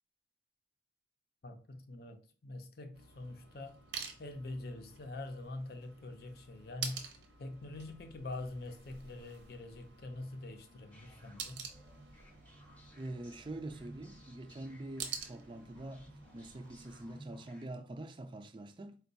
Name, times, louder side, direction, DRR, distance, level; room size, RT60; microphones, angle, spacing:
voice 1, 1.4-3.8 4.2-7.1 7.4-11.7, left 2 dB, 55° left, 0.6 m, -45 dB
sound 1, 2.9-17.2, right 6 dB, 80° right, 0.7 m, -49 dB
sound 2, 10.9-17.7, right 1 dB, 10° left, 0.7 m, -56 dB
voice 2, 12.9-19.0, right 2 dB, 25° right, 0.4 m, -45 dB
4.4 x 2.3 x 3.9 m
head